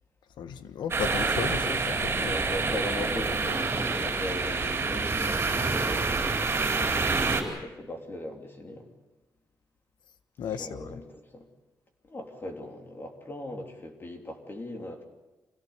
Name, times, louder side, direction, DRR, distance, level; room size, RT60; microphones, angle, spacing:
voice 1, 0.4-2.3 10.4-11.0, left 8 dB, 85° left, 11 dB, 1.3 m, -35 dB
sound 1, 0.9-7.4, right 4 dB, 30° right, 4.2 m, -27 dB
voice 2, 2.1-7.0 7.3-8.9 10.6-11.5 12.1-15.0, left 1 dB, 30° left, 3 dB, 3.1 m, -38 dB
26.5 x 17.0 x 8.2 m, 1.1 s
wide cardioid pair, 135°, 7 cm